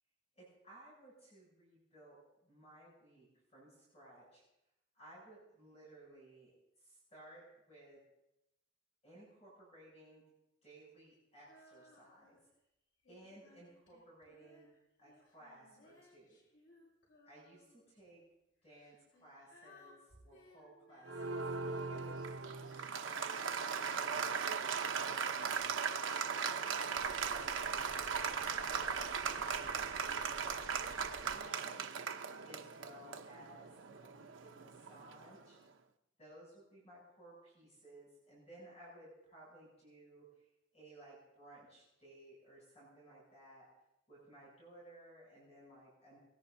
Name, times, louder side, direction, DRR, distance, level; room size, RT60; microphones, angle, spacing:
voice 1, 0.3-4.4 4.9-8.0 9.0-10.2 10.6-12.4 13.1-14.7 15.0-16.4 17.2-18.2 18.6-21.4 21.9-25.8 26.3-28.2 28.5-31.9 32.4-33.7 34.0-35.6 36.2-40.5 40.7-43.7 44.1-46.2, right 1 dB, 35° left, -6 dB, 7.8 m, -59 dB
Female singing, 11.5-12.5 13.0-17.9 18.6-24.2 25.0-28.1 28.8-29.9, left 2 dB, 85° left, 6.8 m, -63 dB
Applause, 21.1-35.4, right 6 dB, 75° right, 0.9 m, -38 dB
sound 1, 27.0-31.4, right 2 dB, 20° right, 8.0 m, -54 dB
22.5 x 20.0 x 2.7 m, 0.88 s
head